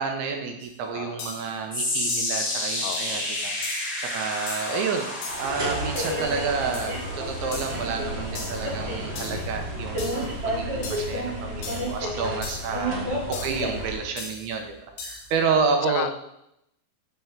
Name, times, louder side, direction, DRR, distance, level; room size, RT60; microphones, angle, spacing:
voice 1, 0.0-5.1 5.4-14.8 15.0-16.1, right 5 dB, 75° right, 4 dB, 2.5 m, -30 dB
sound 1, 0.6-0.7 1.2-1.5 2.1-2.4 2.9-3.2 3.6-4.0 4.5-4.8 5.2-5.5 6.0-6.3 6.7-7.0 7.5-7.8 8.3-8.7 9.2-9.5 10.0-10.3 10.8-11.2 11.6-12.0 12.4-12.8 13.3-13.7 14.2-14.5 15.0-15.3, left 4 dB, 60° left, 3.3 m, -38 dB
voice 2, 0.9-1.3 2.8-3.3 4.7-5.0 9.2-9.5 12.0-12.4 13.1-13.5 15.2-16.2, left 13 dB, 85° left, 11 dB, 3.0 m, -36 dB
sound 2, 1.7-14.0 14.3-14.7 15.3-15.4, left 1 dB, 10° left, 0.5 m, -33 dB
sound 3, 5.2-14.1, equal, 45° right, 1.3 m, -31 dB
9.2 x 4.6 x 7.2 m, 0.81 s
omnidirectional pair, 5.4 m